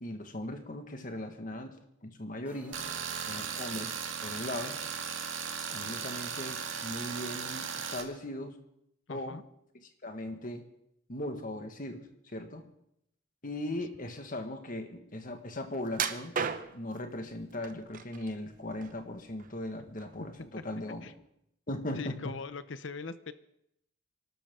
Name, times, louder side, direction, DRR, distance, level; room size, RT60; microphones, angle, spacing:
voice 1, 0.0-1.7 2.0-2.8 3.3-3.9 4.2-4.8 5.7-8.5 9.1-9.4 10.0-10.6 11.1-12.6 13.4-16.4 16.7-21.1 21.7-22.2, left 1 dB, 45° left, 6 dB, 1.7 m, -38 dB
sound 1, 2.4-4.0, right 1 dB, 10° right, 2.0 m, -56 dB
Tools, 2.7-8.0, right 7 dB, 85° right, 2.0 m, -37 dB
voice 2, 9.1-9.4 21.0-21.1 21.9-23.3, left 4 dB, 70° left, 13 dB, 0.8 m, -40 dB
sound 2, 15.9-17.0 17.6-18.3 18.7-19.6 20.0-20.2 20.7-20.8, right 6 dB, 45° right, 0.9 m, -34 dB
27.5 x 12.5 x 3.8 m, 0.77 s
head